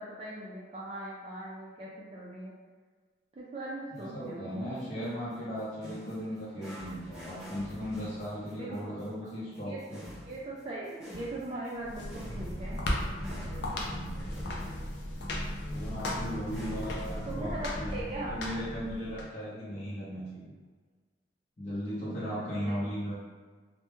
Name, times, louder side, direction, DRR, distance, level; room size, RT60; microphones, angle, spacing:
voice 1, 0.0-2.5 3.3-4.6 8.6-9.0 9.6-9.8 10.3-12.8 17.2-18.3 19.1-19.2 22.1-22.8, right 1 dB, 35° right, -6 dB, 0.3 m, -40 dB
voice 2, 3.9-10.0 13.9-14.2 15.7-20.5 21.6-23.1, equal, 40° left, -10 dB, 0.7 m, -37 dB
sound 1, 4.0-4.1 4.7-5.0 5.3-17.3, equal, 5° right, 0.7 m, -48 dB
sound 2, 11.8-19.2, left 1 dB, 90° left, 0.4 m, -36 dB
2.2 x 2.1 x 3.0 m, 1.5 s
head